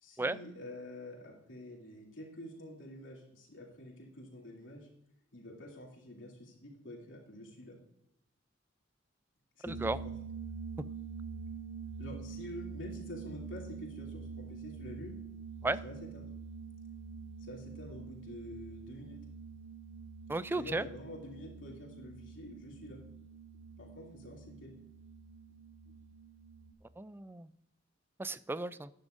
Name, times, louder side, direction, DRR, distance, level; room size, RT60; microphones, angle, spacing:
voice 1, 0.0-4.9 5.3-7.8 9.6-10.1 12.0-15.2 15.8-16.3 17.4-19.2 20.5-23.0 23.8-24.8, left 1 dB, 90° left, -1 dB, 2.7 m, -48 dB
sound 1, 9.7-26.7, right 5 dB, 40° right, 1.2 m, -46 dB
voice 2, 20.3-20.9 27.0-27.5 28.2-28.9, right 2 dB, 10° right, 16 dB, 0.3 m, -34 dB
12.0 x 9.6 x 2.6 m, 0.81 s
head